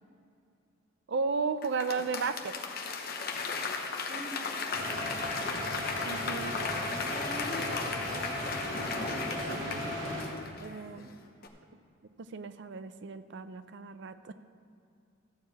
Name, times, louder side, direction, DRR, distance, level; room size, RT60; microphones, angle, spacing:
voice 1, 1.1-2.5 6.0-6.6 10.6-11.1 12.2-14.3, right 4 dB, 65° right, 12 dB, 0.5 m, -34 dB
Applause / Crowd, 1.6-11.0 11.4-11.5, left 4 dB, 50° left, 0.9 m, -36 dB
sound 1, 4.7-10.2, equal, 85° right, 2.7 m, -37 dB
voice 2, 4.8-5.7 6.8-9.6, equal, 15° right, -8 dB, 2.1 m, -45 dB
14.0 x 4.8 x 7.5 m, 2.6 s
head